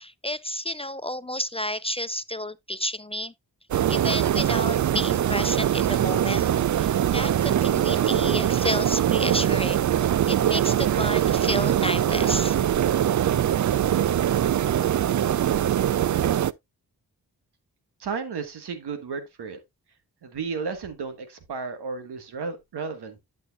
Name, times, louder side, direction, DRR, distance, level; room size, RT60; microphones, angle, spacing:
voice 1, 0.0-3.3 3.9-6.5 6.8-12.6, left 1 dB, 15° left, 0.4 m, -31 dB
sound 1, 3.7-16.5, right 10 dB, 50° right, 0.5 m, -22 dB
voice 2, 18.0-19.6 20.2-23.2, right 5 dB, 90° right, 1.5 m, -33 dB
11.0 x 6.8 x 2.3 m
cardioid pair, 40°, 39 cm